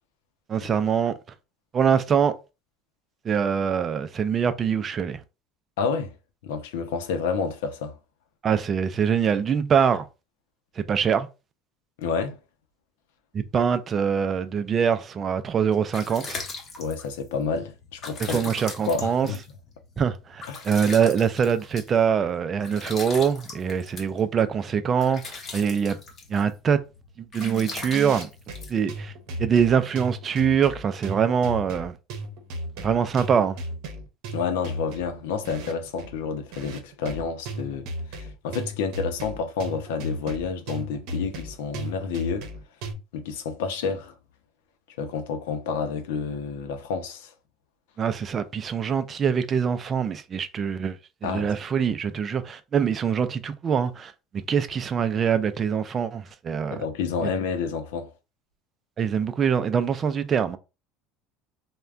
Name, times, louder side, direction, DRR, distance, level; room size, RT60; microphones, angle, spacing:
voice 1, 0.5-1.1 1.7-2.3 3.2-5.2 8.4-10.0 10.8-11.3 13.3-16.4 18.2-19.3 20.0-26.0 26.3-26.8 27.2-28.3 28.7-29.1 29.4-32.0 32.8-33.6 48.0-54.1 54.5-56.8 57.2-57.3 59.0-60.6, right 7 dB, 35° right, 0.4 m, -24 dB
voice 2, 5.8-6.1 6.4-8.0 12.0-12.4 16.8-18.4 18.9-19.4 20.5-20.7 34.3-42.5 43.1-44.2 44.9-47.3 51.2-51.5 56.7-58.1, left 5 dB, 90° left, 0.6 m, -29 dB
sound 1, 15.5-29.4, left 3 dB, 35° left, 1.0 m, -41 dB
sound 2, 27.4-42.9, right 1 dB, 70° right, 0.8 m, -36 dB
3.3 x 2.2 x 2.5 m
supercardioid pair, 115°, 0 cm